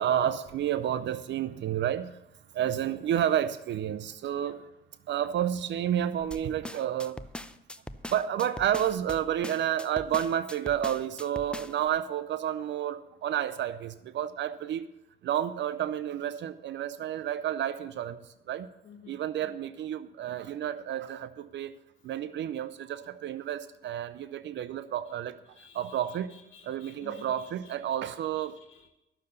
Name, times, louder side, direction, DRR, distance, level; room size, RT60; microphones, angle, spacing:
voice 1, 0.0-2.1 2.5-4.6 5.1-7.2 8.1-14.8 15.2-18.2 18.5-18.7 19.1-21.7 22.0-25.4 25.7-26.3 26.7-28.5, right 10 dB, 65° right, 14 dB, 0.6 m, -30 dB
voice 2, 2.6-2.9 4.4-4.6 18.8-19.6 25.0-25.1 25.5-28.9, left 6 dB, 75° left, 4 dB, 1.9 m, -54 dB
sound 1, 6.3-11.9, left 1 dB, 5° left, 0.6 m, -41 dB
12.5 x 6.8 x 6.7 m, 0.94 s
cardioid pair, 90°, 20 cm